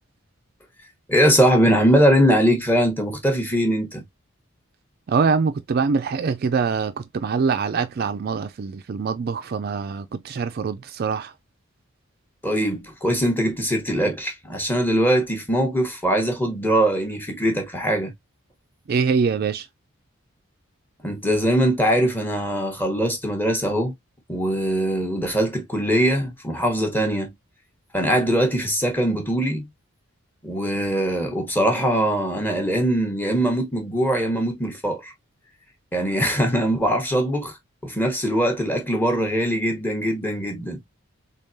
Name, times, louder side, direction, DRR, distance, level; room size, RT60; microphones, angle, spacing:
voice 1, 1.1-4.0 12.4-18.1 21.0-23.9 24.3-27.3 27.9-29.7 30.4-35.1 35.9-37.6 37.8-40.8, equal, 10° left, 1.0 m, -21 dB
voice 2, 5.1-11.3 18.9-19.7, right 5 dB, 45° right, 0.3 m, -24 dB
3.6 x 3.6 x 2.6 m
head